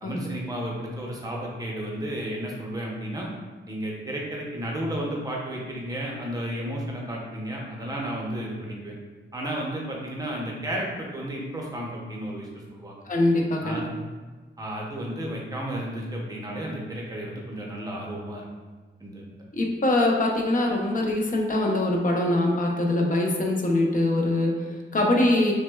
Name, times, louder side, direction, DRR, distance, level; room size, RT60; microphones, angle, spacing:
voice 1, 0.0-3.3 3.7-8.9 9.3-13.0 13.6-14.0 14.6-18.4 19.0-19.2, right 1 dB, 20° right, -2 dB, 0.6 m, -33 dB
voice 2, 13.1-13.8 19.5-25.5, left 1 dB, 40° left, 0 dB, 0.6 m, -23 dB
6.0 x 2.1 x 2.2 m, 1.3 s
wide cardioid pair, 140°, 21 cm